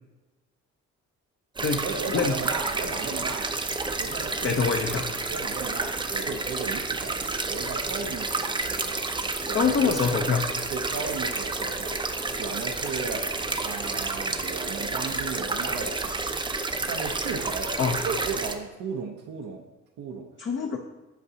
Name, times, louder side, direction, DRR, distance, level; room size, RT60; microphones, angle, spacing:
sound 1, 1.6-18.6, right 3 dB, 15° right, 0.5 m, -30 dB
voice 1, 1.8-3.5 4.0-4.6 5.3-7.2 7.5-9.0 9.4-9.9 10.7-12.0 12.3-13.3 13.6-16.2 16.9-17.7 18.0-19.6 20.0-20.3, right 5 dB, 80° right, 0 dB, 0.8 m, -35 dB
voice 2, 4.4-5.0 9.5-10.4 17.8-18.0 20.4-20.8, left 5 dB, 40° left, 2 dB, 0.7 m, -24 dB
8.2 x 5.8 x 2.8 m, 1.1 s
cardioid pair, 90°, 30 cm